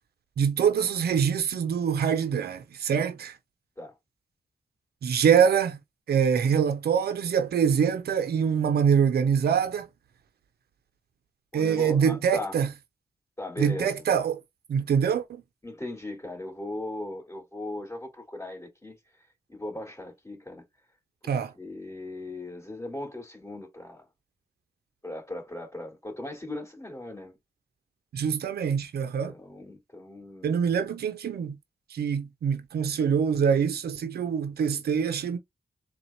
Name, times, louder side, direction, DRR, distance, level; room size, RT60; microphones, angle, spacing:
voice 1, 0.4-3.3 5.0-5.8 6.1-9.9 11.5-12.7 13.6-14.4 14.7-15.4 21.3-21.5 28.1-29.3 30.4-31.6 31.9-35.4, right 7 dB, 85° right, 0.7 m, -24 dB
voice 2, 11.5-12.6 13.4-14.0 15.6-19.0 19.5-20.6 21.5-24.1 25.0-27.3 29.3-30.6, left 2 dB, 20° left, 2.8 m, -38 dB
3.9 x 2.4 x 4.3 m
cardioid pair, 45°, 16 cm